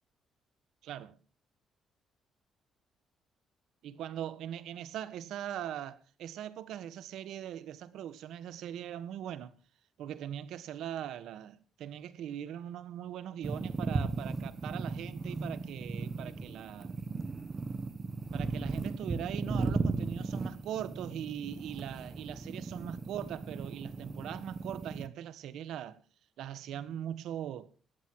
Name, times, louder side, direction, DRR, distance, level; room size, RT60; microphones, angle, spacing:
voice 1, 0.8-1.2 3.8-9.5 10.0-17.0 18.3-26.0 26.4-27.7, right 10 dB, 75° right, 1.5 m, -41 dB
sound 1, 13.4-25.1, right 3 dB, 25° right, 1.1 m, -36 dB
19.5 x 15.0 x 3.1 m
cardioid pair, 165°, 0 cm